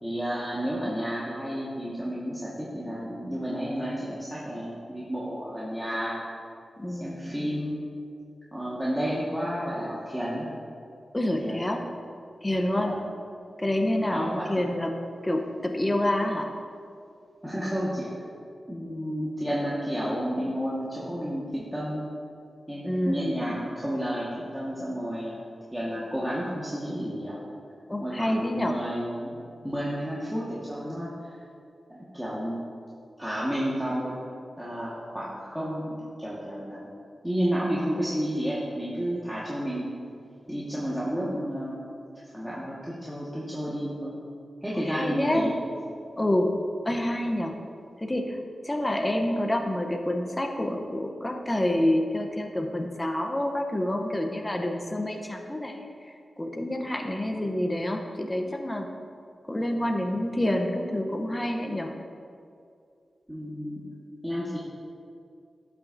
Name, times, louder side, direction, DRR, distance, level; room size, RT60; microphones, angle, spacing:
voice 1, 0.0-6.2 6.9-7.8 8.5-10.5 11.4-11.6 12.8-13.0 14.1-14.5 17.4-18.1 18.7-22.1 22.7-25.3 25.7-27.4 28.0-31.3 31.9-32.6 33.2-34.2 34.6-36.9 37.2-39.9 40.5-41.8 42.3-44.1 44.6-45.5 63.3-63.8 64.2-64.6, equal, 5° right, -8 dB, 1.5 m, -31 dB
voice 2, 6.8-7.5 11.1-11.8 12.4-13.0 13.6-15.0 15.2-16.5 22.8-23.4 27.9-28.7 44.7-45.5 46.2-46.6 46.8-47.6 48.0-58.9 59.5-61.9, left 1 dB, 20° left, 3 dB, 0.8 m, -28 dB
12.0 x 5.8 x 2.6 m, 2.4 s
cardioid pair, 50°, 0 cm